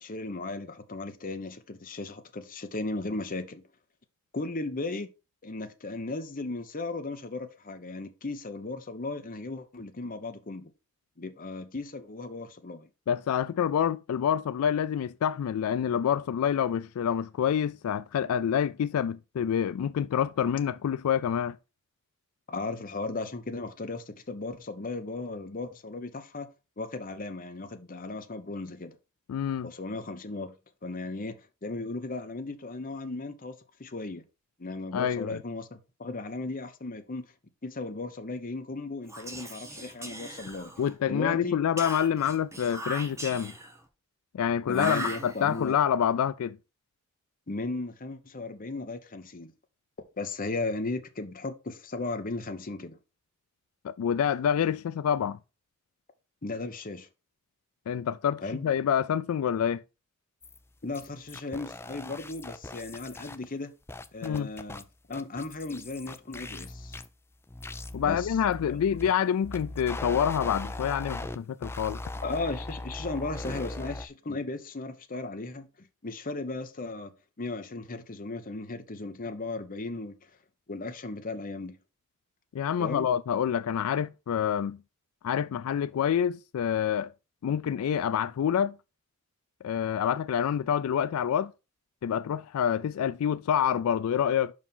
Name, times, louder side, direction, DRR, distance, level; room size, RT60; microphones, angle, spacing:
voice 1, 0.0-3.6 4.3-5.1 5.4-10.7 11.2-12.9 22.5-26.5 26.8-29.0 29.6-30.6 30.8-34.2 34.6-37.2 37.6-40.7 41.1-41.6 44.7-45.8 47.5-49.5 50.2-53.0 56.4-57.1 58.4-58.6 60.8-63.7 64.1-67.0 68.0-68.3 68.7-68.8 72.2-77.1 77.4-80.2 80.7-81.8 82.8-83.1, left 3 dB, 40° left, 1.0 m, -36 dB
voice 2, 13.1-21.6 29.3-29.7 34.9-35.4 40.8-43.5 44.3-46.6 53.8-55.4 57.9-59.8 64.2-64.5 67.9-72.0 82.5-84.8 85.2-87.1 87.4-88.8 89.6-91.5 92.0-94.5, left 8 dB, 85° left, 0.3 m, -27 dB
Whispering, 39.0-41.0 41.8-43.8 44.7-45.7, right 1 dB, 15° right, 1.3 m, -39 dB
sound 1, 60.4-60.6 60.9-63.4 63.9-64.8 65.1-67.1 67.5-69.1 69.4-71.4 71.6-74.1, left 2 dB, 10° left, 0.5 m, -39 dB
5.5 x 4.8 x 5.4 m
head